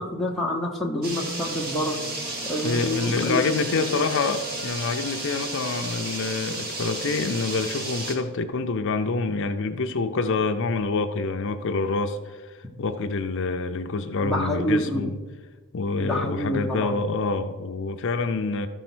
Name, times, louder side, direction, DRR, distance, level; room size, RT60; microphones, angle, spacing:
voice 1, 0.0-2.0 2.4-3.4 3.8-4.1 14.2-15.0 16.0-16.9, equal, ahead, 1.0 m, -27 dB
sound 1, 1.0-8.2, right 2 dB, 45° right, 1.7 m, -33 dB
Bowed string instrument, 1.7-5.9, right 4 dB, 85° right, 2.0 m, -44 dB
voice 2, 2.6-15.2 15.7-18.7, left 3 dB, 60° left, 0.5 m, -27 dB
13.5 x 4.5 x 6.1 m
head